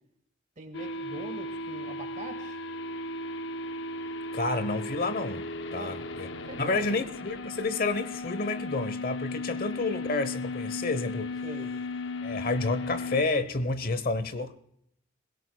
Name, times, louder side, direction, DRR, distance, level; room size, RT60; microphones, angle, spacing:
voice 1, 0.6-2.6 5.7-6.0 6.5-7.0 9.5-9.6 11.4-11.7, right 2 dB, 40° right, 1.9 m, -43 dB
sound 1, 0.7-13.2, left 2 dB, 70° left, 0.7 m, -36 dB
voice 2, 4.3-6.3 6.6-11.4 12.2-14.6, left 3 dB, 50° left, 1.0 m, -30 dB
21.5 x 17.0 x 2.3 m
head